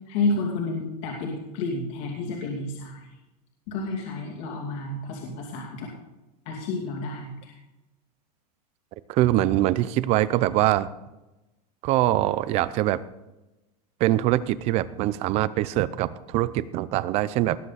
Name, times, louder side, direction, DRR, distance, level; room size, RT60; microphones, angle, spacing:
voice 1, 0.1-3.1 3.7-5.9 6.5-7.5, left 3 dB, 55° left, -2 dB, 2.5 m, -30 dB
voice 2, 9.1-10.9 11.8-13.0 14.0-17.6, right 14 dB, 30° right, 17 dB, 0.5 m, -23 dB
18.5 x 7.6 x 4.1 m, 1.0 s
supercardioid pair, 160°, 21 cm